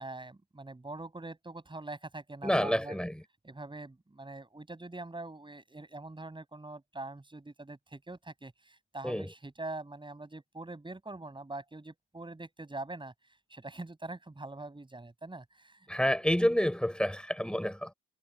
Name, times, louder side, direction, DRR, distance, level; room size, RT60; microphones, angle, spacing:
voice 1, 0.0-3.0 3.4-13.1 13.5-16.1, right 2 dB, 15° right, 7.8 m, -43 dB
voice 2, 2.4-3.2 9.0-9.3 15.9-17.9, equal, 5° left, 5.7 m, -29 dB
cardioid pair, 90°, 30 cm